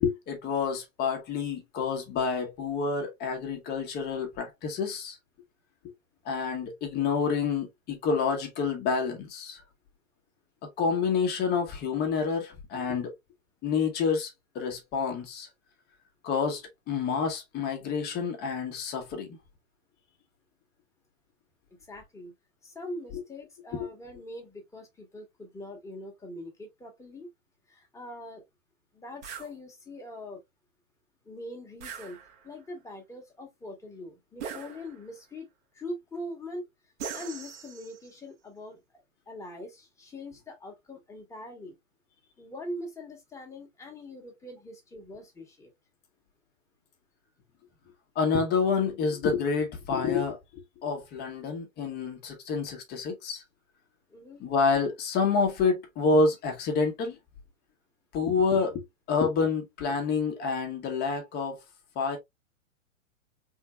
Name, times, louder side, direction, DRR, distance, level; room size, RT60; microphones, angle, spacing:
voice 1, 0.0-5.2 6.2-9.6 10.8-13.1 13.6-15.5 16.2-19.4 23.1-23.2 23.8-23.9 48.1-53.4 54.4-57.2 58.1-61.6 61.9-62.2, left 5 dB, 25° left, 1.2 m, -28 dB
voice 2, 21.9-22.3 22.6-27.3 27.7-28.4 28.9-30.4 31.2-32.2 32.4-35.5 35.7-36.7 37.1-38.8 39.3-41.7 42.4-45.7 54.1-54.4, left 1 dB, 5° left, 1.4 m, -42 dB
sound 1, 29.2-29.5 31.8-32.6 34.4-35.2 37.0-38.1, right 7 dB, 55° right, 1.3 m, -41 dB
4.4 x 3.7 x 2.2 m
hypercardioid pair, 125°, 41 cm